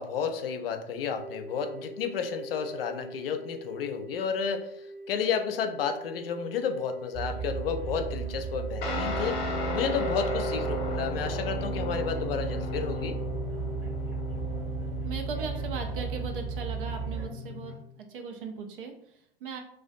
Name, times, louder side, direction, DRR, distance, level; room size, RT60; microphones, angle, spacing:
voice 1, 0.0-13.2, left 6 dB, 70° left, 7 dB, 0.4 m, -32 dB
sound 1, 1.1-18.5, right 2 dB, 5° left, 0.5 m, -47 dB
sound 2, 7.1-17.3, right 7 dB, 40° right, 1.1 m, -35 dB
Guitar, 8.8-17.7, left 2 dB, 45° left, 0.8 m, -34 dB
voice 2, 15.0-19.6, right 5 dB, 60° right, 4 dB, 0.6 m, -38 dB
2.4 x 2.2 x 2.5 m, 0.71 s
figure-of-eight pair, 95°, 30 cm